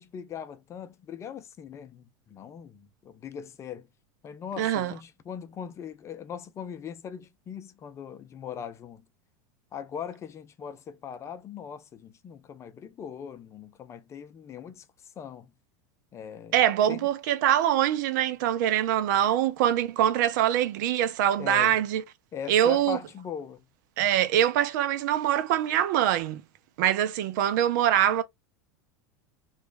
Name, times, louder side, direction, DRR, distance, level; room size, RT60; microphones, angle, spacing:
voice 1, 0.0-3.9 4.2-9.0 9.7-14.9 15.2-15.5 16.1-16.6 16.9-17.1 21.4-21.8 22.3-23.7, left 8 dB, 30° left, 0.5 m, -40 dB
voice 2, 4.6-4.9 16.5-22.0 22.5-23.0 24.0-26.4 26.8-28.2, right 11 dB, 70° right, 0.6 m, -24 dB
3.0 x 2.4 x 3.3 m
supercardioid pair, 120°, 10 cm